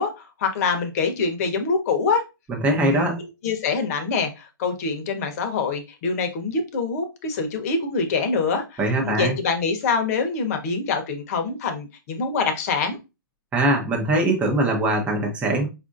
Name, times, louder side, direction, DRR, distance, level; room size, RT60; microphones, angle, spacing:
voice 1, 0.0-2.2 2.9-13.0, left 4 dB, 40° left, 0.8 m, -25 dB
voice 2, 2.6-3.2 8.8-9.4 13.5-15.7, right 1 dB, 10° right, 0.7 m, -21 dB
4.9 x 2.5 x 2.5 m
hypercardioid pair, 145°, 12 cm